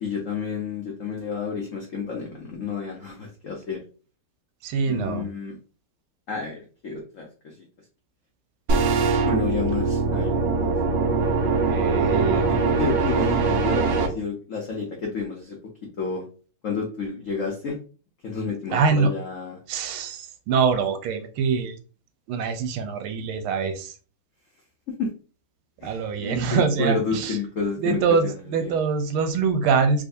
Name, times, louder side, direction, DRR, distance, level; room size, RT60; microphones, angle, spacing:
voice 1, 0.0-3.8 4.9-5.6 6.3-7.5 9.2-10.7 12.5-15.6 16.0-16.2 16.6-17.8 18.2-19.6 25.0-25.1 25.8-28.8, left 4 dB, 85° left, -1 dB, 0.7 m, -30 dB
voice 2, 4.6-5.3 11.6-12.5 18.7-19.1 19.7-21.8 22.3-23.9 25.8-27.4 27.8-30.1, right 5 dB, 90° right, 7 dB, 1.5 m, -24 dB
sound 1, 8.7-14.1, right 4 dB, 70° right, 1.4 m, -22 dB
3.6 x 3.1 x 2.6 m, 0.37 s
omnidirectional pair, 2.3 m